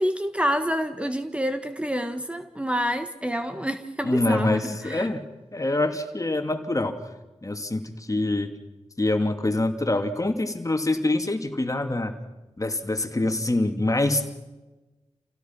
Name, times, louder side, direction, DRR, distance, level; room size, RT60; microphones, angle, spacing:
voice 1, 0.0-5.1, equal, 10° right, 1.5 m, -27 dB
voice 2, 4.0-7.0 7.4-8.5 9.0-12.1 12.6-14.3, left 2 dB, 30° left, 2.7 m, -25 dB
28.5 x 16.5 x 6.0 m
cardioid pair, 55°, 11 cm